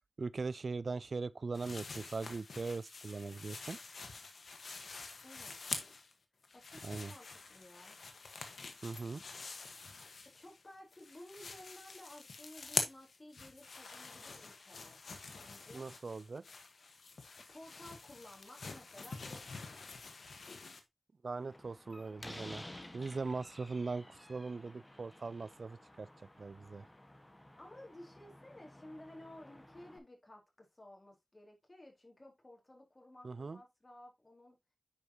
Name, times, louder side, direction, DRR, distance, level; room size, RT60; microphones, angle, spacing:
voice 1, 0.2-3.8 6.8-7.1 8.8-9.2 15.7-16.4 21.2-22.6 22.9-26.1 26.4-26.8 33.2-33.6, right 4 dB, 70° right, 0.3 m, -40 dB
sound 1, 1.5-6.1 6.4-10.6 10.9-20.8, left 4 dB, 85° left, 1.3 m, -45 dB
voice 2, 5.2-5.7 6.5-8.0 10.3-15.0 15.3-15.9 17.4-19.8 27.6-34.6, left 1 dB, 35° left, 4.0 m, -55 dB
Slam, 21.4-30.0, left 1 dB, 20° left, 1.4 m, -54 dB
9.6 x 5.2 x 2.8 m
cardioid pair, 40°, 0 cm